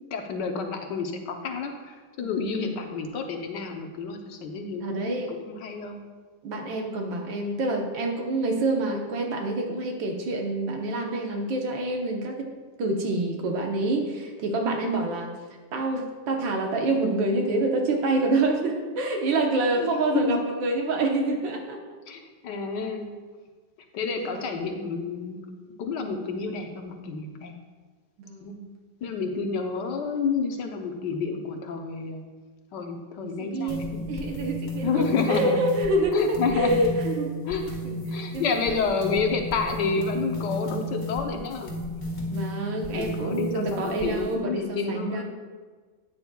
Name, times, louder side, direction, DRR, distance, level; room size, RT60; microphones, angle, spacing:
voice 1, 0.1-6.0 19.8-20.4 22.1-23.1 23.9-25.4 25.8-27.5 28.4-28.6 29.0-32.2 32.7-34.0 34.8-35.6 36.1-36.8 37.4-37.6 38.1-41.7 42.9-45.2, left 5 dB, 70° left, 4 dB, 1.4 m, -29 dB
voice 2, 2.3-2.8 4.8-5.3 6.4-12.5 12.8-15.3 15.7-21.8 24.2-24.3 28.2-28.7 29.1-29.2 33.2-36.1 36.5-37.4 37.8-38.8 42.3-45.2, right 2 dB, 85° right, 2 dB, 1.8 m, -27 dB
sound 1, 33.7-44.3, left 1 dB, 35° left, 1.8 m, -34 dB
12.5 x 8.9 x 2.3 m, 1.4 s
omnidirectional pair, 2.0 m